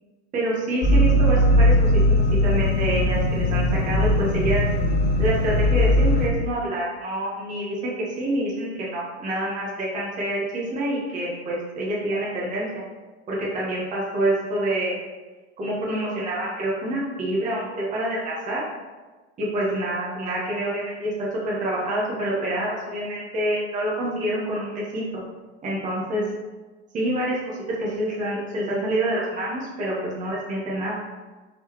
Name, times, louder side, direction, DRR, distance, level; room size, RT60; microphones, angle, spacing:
voice 1, 0.3-1.9 2.4-4.6 5.2-12.8 13.3-15.0 15.6-18.6 19.4-25.2 25.6-26.2 26.9-31.0, right 1 dB, 20° right, -5 dB, 1.1 m, -27 dB
sound 1, 0.8-6.3, left 1 dB, 30° left, 0.7 m, -19 dB
4.2 x 3.9 x 2.9 m, 1.3 s
supercardioid pair, 130°, 36 cm